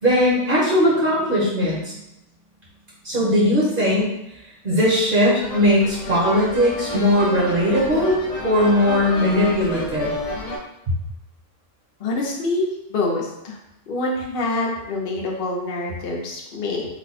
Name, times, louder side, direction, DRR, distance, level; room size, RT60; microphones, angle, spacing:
voice 1, 0.0-1.9 3.0-4.0 4.6-10.1, equal, 45° right, -7 dB, 1.2 m, -19 dB
sound 1, 5.4-10.6, left 1 dB, 75° left, 1.1 m, -30 dB
voice 2, 12.0-13.6 13.9-16.9, left 2 dB, 55° left, -2 dB, 0.8 m, -26 dB
3.4 x 2.2 x 4.0 m, 0.86 s
omnidirectional pair, 1.3 m